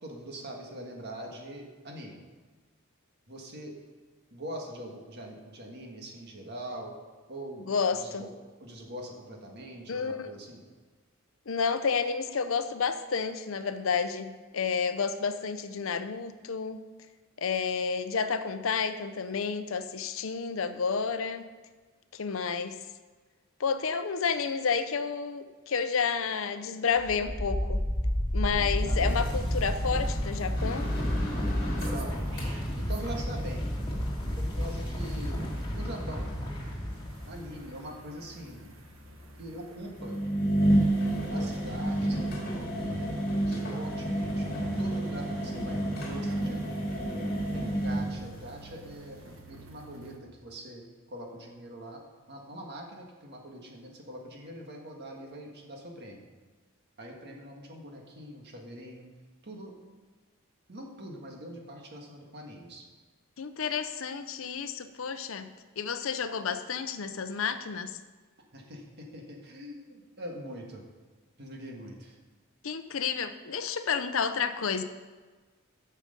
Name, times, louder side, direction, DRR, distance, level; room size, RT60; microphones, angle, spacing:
voice 1, 0.0-2.2 3.3-3.8 4.3-6.9 7.3-7.6 7.9-8.3 8.6-10.6 28.6-29.1 31.7-32.2 32.8-33.6 34.4-35.4 35.7-36.3 37.3-38.7 39.4-40.2 41.3-47.0 47.5-49.2 49.5-52.0 52.3-56.3 57.0-59.0 59.4-59.7 60.7-62.8 68.5-70.8 71.4-72.2, right 1 dB, 50° right, 1 dB, 1.7 m, -43 dB
voice 2, 7.7-8.3 9.9-10.3 11.5-16.8 17.4-21.5 22.1-22.8 23.6-27.8 28.3-30.9 63.4-65.5 65.8-68.0 72.6-74.8, left 5 dB, 70° left, 11 dB, 0.6 m, -30 dB
sound 1, 27.0-37.8, equal, 25° left, 2.2 m, -31 dB
sound 2, 30.3-33.5 33.8-50.2, right 2 dB, 70° right, 1.3 m, -50 dB
sound 3, 30.6-32.7 36.5-36.6 38.4-38.5 39.9-48.7 49.0-49.2, right 1 dB, 45° left, 2.3 m, -30 dB
8.9 x 6.5 x 6.6 m, 1.4 s
head